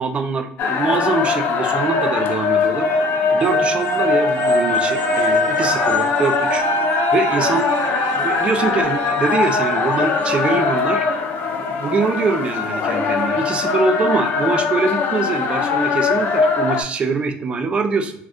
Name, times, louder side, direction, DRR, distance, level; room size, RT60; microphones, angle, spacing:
voice 1, 0.0-2.9 3.3-6.6 7.1-7.7 8.1-11.0 11.6-18.1, right 4 dB, 25° right, 5 dB, 0.4 m, -23 dB
sound 1, 0.6-16.8, left 5 dB, 50° left, 0.4 m, -20 dB
sound 2, 3.4-10.9, right 8 dB, 75° right, 0.6 m, -28 dB
2.5 x 2.2 x 3.4 m, 0.72 s
cardioid pair, 140°, 4 cm